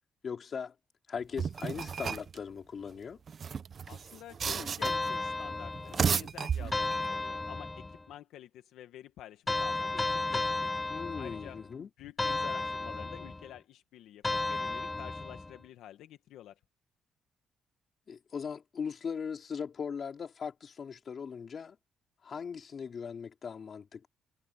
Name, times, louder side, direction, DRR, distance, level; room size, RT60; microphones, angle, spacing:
voice 1, 0.2-0.8 1.1-3.2 10.9-11.9 18.1-21.8 22.2-24.1, left 6 dB, 50° left, 3.8 m, -39 dB
sound 1, 1.4-2.4 3.3-5.1 5.8-7.1, right 6 dB, 45° right, 0.7 m, -33 dB
voice 2, 3.9-10.7 11.2-11.6 12.0-16.6, left 12 dB, 85° left, 1.2 m, -49 dB
sound 2, 4.8-6.1 6.7-8.0 9.5-11.7 12.2-13.5 14.2-15.5, left 2 dB, 20° left, 0.3 m, -33 dB
cardioid pair, 90°, 0 cm